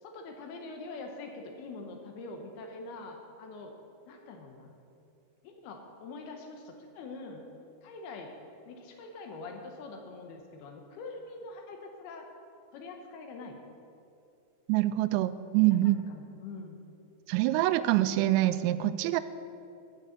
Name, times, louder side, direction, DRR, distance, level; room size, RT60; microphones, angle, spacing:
voice 1, 0.0-3.7 4.1-4.7 5.4-7.4 7.8-8.3 8.7-12.3 12.7-13.6 15.7-16.8, left 3 dB, 75° left, 3 dB, 2.7 m, -44 dB
voice 2, 14.7-16.0 17.3-19.2, right 15 dB, 85° right, 14 dB, 2.7 m, -25 dB
13.0 x 6.5 x 8.1 m, 2.6 s
omnidirectional pair, 5.0 m